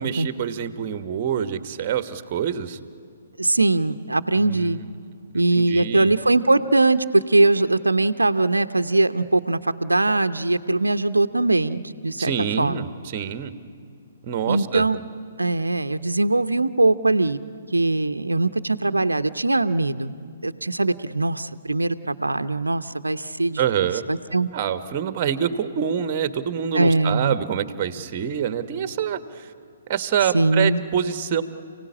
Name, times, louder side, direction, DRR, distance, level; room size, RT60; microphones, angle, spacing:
voice 1, 0.0-2.8 4.4-4.8 5.3-6.1 12.2-13.5 14.2-14.9 23.6-24.0 24.5-29.5 29.9-31.4, right 8 dB, 35° right, 11 dB, 1.3 m, -26 dB
voice 2, 3.4-4.8 5.3-12.3 12.6-12.8 14.5-15.0 15.4-17.4 17.7-20.1 20.4-23.6 24.1-24.5 26.7-27.4 30.3-30.8, right 2 dB, 80° right, 10 dB, 0.8 m, -21 dB
29.5 x 17.5 x 9.8 m, 2.3 s
figure-of-eight pair, 125°, 0 cm